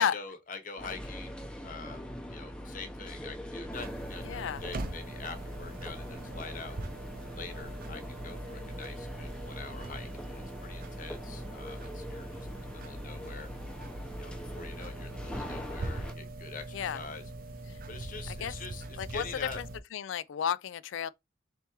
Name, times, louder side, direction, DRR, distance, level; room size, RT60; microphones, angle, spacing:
voice 1, 0.0-6.8 7.3-13.5 14.2-17.2 17.8-19.6, left 4 dB, 40° left, 0.9 m, -45 dB
sound 1, 0.8-16.1, equal, 5° left, 0.6 m, -42 dB
sound 2, 3.7-19.8, right 2 dB, 45° right, 0.5 m, -42 dB
voice 2, 4.2-4.6 16.7-17.0 17.7-17.8 18.3-18.5 19.0-21.1, left 8 dB, 75° left, 0.3 m, -32 dB
4.2 x 3.4 x 3.0 m
head